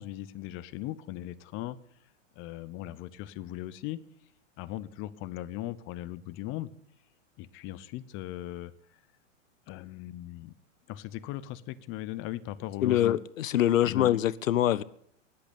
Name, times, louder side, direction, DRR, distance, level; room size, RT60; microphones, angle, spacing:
voice 1, 0.0-1.8 2.4-4.0 4.6-6.7 7.4-8.7 9.7-10.6 10.9-13.2 13.8-14.1, left 14 dB, 30° left, 0.9 m, -38 dB
voice 2, 12.8-14.8, left 12 dB, 85° left, 0.7 m, -24 dB
20.0 x 8.3 x 8.6 m
hypercardioid pair, 130°, 38 cm